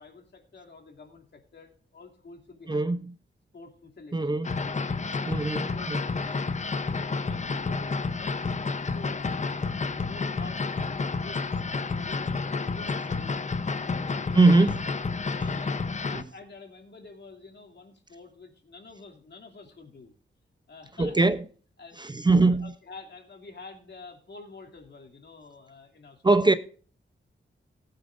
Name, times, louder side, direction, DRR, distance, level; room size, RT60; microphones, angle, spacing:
voice 1, 0.0-3.0 3.5-4.4 5.0-5.4 5.6-5.9 6.4-9.2 9.7-10.8 11.1-13.6 13.8-14.7 15.3-20.1 20.7-21.3 21.8-26.5, left 3 dB, 60° left, 2.7 m, -48 dB
voice 2, 2.7-3.1 4.1-4.5 5.3-6.0 14.3-14.8 16.1-16.2 21.0-21.4 22.0-22.7 26.2-26.5, right 3 dB, 20° right, 0.6 m, -22 dB
sound 1, 4.4-16.2, left 4 dB, 35° left, 0.8 m, -30 dB
19.5 x 8.8 x 2.5 m
wide cardioid pair, 145°, 20 cm